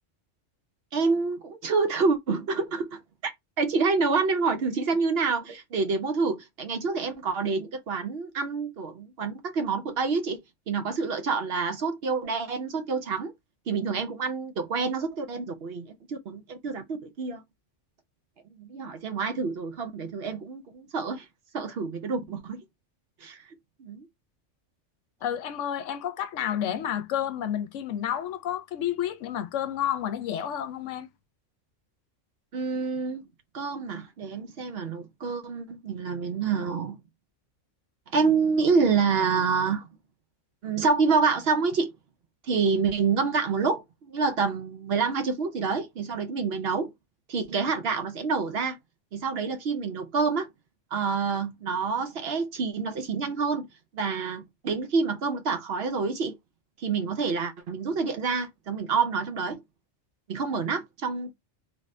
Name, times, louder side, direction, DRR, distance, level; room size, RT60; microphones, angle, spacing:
voice 1, 0.9-3.3 3.6-10.4 10.7-13.3 13.7-17.4 18.6-21.3 21.5-22.6 23.2-23.4 23.8-24.1 32.5-33.2 33.5-37.0 38.1-39.9 40.6-41.9 42.4-46.9 47.3-48.8 49.1-50.5 50.9-53.7 53.9-56.4 56.8-59.6 60.3-61.3, right 4 dB, 60° right, 0.8 m, -27 dB
voice 2, 25.2-31.1, left 10 dB, 80° left, 0.9 m, -30 dB
3.4 x 2.5 x 3.1 m
omnidirectional pair, 1.3 m